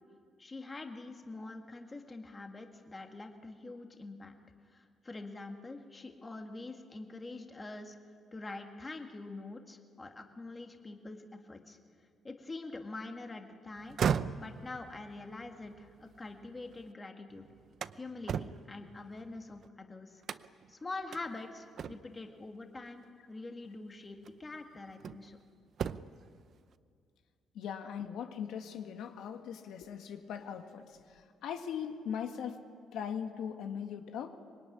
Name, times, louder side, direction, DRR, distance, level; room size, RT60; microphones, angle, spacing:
voice 1, 0.4-4.3 4.7-8.0 8.3-11.8 12.2-14.0 14.4-17.5 17.9-20.2 20.7-25.4, left 2 dB, 20° left, 4 dB, 1.8 m, -45 dB
sound 1, 13.8-16.9 17.3-19.7 20.2-20.7 21.1-21.2 21.8-22.3 23.5-23.7 24.2-25.4 25.7-26.3, right 7 dB, 50° right, 0.7 m, -37 dB
voice 2, 27.5-32.6 32.9-34.3, left 8 dB, 80° left, 5 dB, 1.8 m, -40 dB
25.0 x 22.0 x 10.0 m, 2.2 s
cardioid pair, 145°, 0 cm